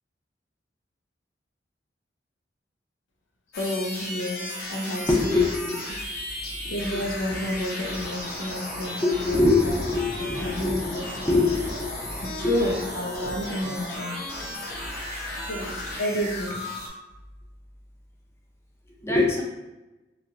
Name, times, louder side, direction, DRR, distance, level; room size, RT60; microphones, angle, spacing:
voice 1, 3.5-5.5 6.7-9.7 10.4-11.4 12.2-14.2 15.4-16.7, left 1 dB, 90° left, 1 dB, 0.6 m, -30 dB
sound 1, 3.5-16.9, left 1 dB, 55° left, 0.8 m, -35 dB
voice 2, 5.1-5.9 9.0-12.1 12.4-12.5 19.0-19.4, left 2 dB, 15° left, -2 dB, 0.5 m, -24 dB
3.3 x 2.7 x 2.5 m, 1.0 s
head